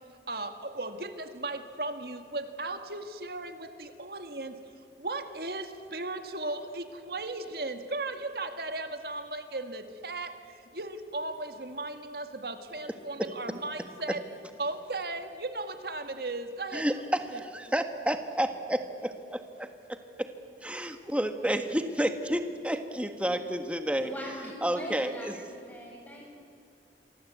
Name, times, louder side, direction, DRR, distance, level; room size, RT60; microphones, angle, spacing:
voice 1, 0.3-14.2 14.6-17.0 17.3-17.4, right 2 dB, 60° right, 8 dB, 1.8 m, -36 dB
voice 2, 16.7-20.3 20.6-24.1 24.6-25.3, right 1 dB, 5° right, 7 dB, 1.4 m, -30 dB
voice 3, 23.9-26.3, equal, 10° left, -1 dB, 6.6 m, -42 dB
28.0 x 24.0 x 8.4 m, 2.5 s
head